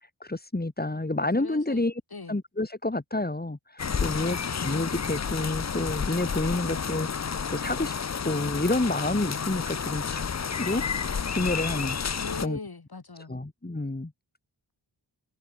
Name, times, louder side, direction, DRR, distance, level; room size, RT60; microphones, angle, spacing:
voice 1, 0.0-2.0 2.3-7.9 8.2-10.8 11.3-12.0 12.4-12.6 13.3-14.1, left 2 dB, 20° left, 2.6 m, -29 dB
voice 2, 1.4-1.8 2.1-2.4 12.2-13.3, left 4 dB, 55° left, 6.1 m, -40 dB
sound 1, 3.8-12.5, left 6 dB, 35° left, 0.7 m, -31 dB
wide cardioid pair, 65°, 45 cm